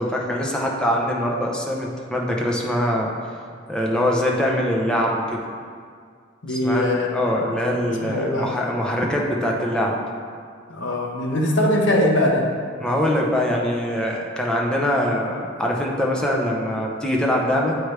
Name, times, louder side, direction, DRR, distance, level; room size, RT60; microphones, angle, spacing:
voice 1, 0.0-3.1 3.7-5.4 6.5-9.9 12.8-17.8, equal, 5° left, -2 dB, 0.6 m, -23 dB
voice 2, 6.4-7.1 7.8-8.5 10.7-12.5, left 1 dB, 75° left, 0 dB, 0.9 m, -21 dB
8.0 x 4.7 x 3.3 m, 2.1 s
head